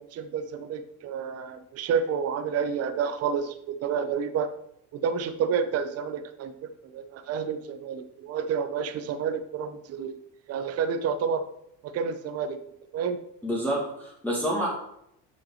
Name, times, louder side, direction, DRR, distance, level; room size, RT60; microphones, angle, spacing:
voice 1, 0.0-4.5 4.9-10.1 10.5-11.4 11.8-12.6 12.9-13.2, right 6 dB, 45° right, 9 dB, 0.9 m, -29 dB
voice 2, 13.4-14.7, equal, 5° left, -4 dB, 2.2 m, -28 dB
6.4 x 6.0 x 6.4 m, 0.76 s
cardioid pair, 125°, 33 cm